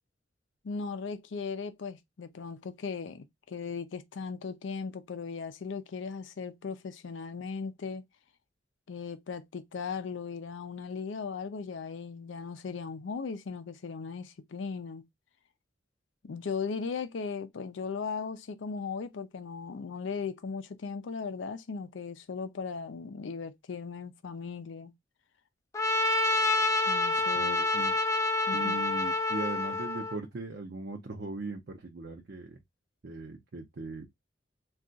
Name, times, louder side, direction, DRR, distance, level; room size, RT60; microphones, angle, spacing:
voice 1, 0.6-8.0 8.9-15.0 16.2-24.9 26.9-27.6 28.5-28.8, left 5 dB, 85° left, 0.5 m, -37 dB
Trumpet, 25.7-30.2, left 2 dB, 15° left, 0.3 m, -27 dB
voice 2, 27.4-28.0 28.5-32.6 33.0-34.1, right 3 dB, 60° right, 0.5 m, -39 dB
2.4 x 2.3 x 3.7 m
head